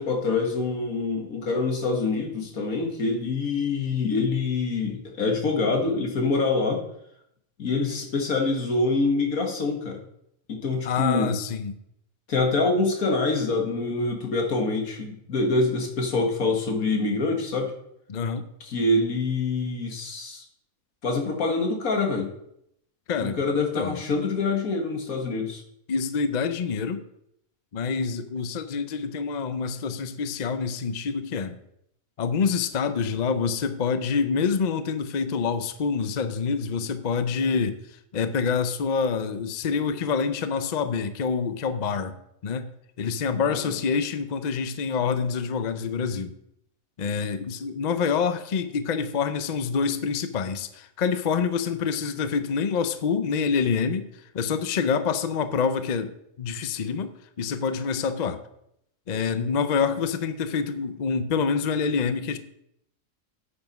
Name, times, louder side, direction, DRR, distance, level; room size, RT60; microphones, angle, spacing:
voice 1, 0.0-6.8 7.6-10.0 10.5-11.3 12.3-17.7 18.6-20.4 21.0-22.3 23.2-25.6 43.3-43.8, left 3 dB, 90° left, 2 dB, 2.0 m, -25 dB
voice 2, 10.9-11.7 18.1-18.5 23.1-24.0 25.9-27.0 27.7-31.6 32.2-42.2 42.4-42.7 43.0-46.3 47.0-54.1 54.3-58.4 59.1-62.4, left 5 dB, 45° left, 10 dB, 0.6 m, -26 dB
8.6 x 7.2 x 5.3 m, 0.76 s
omnidirectional pair, 1.4 m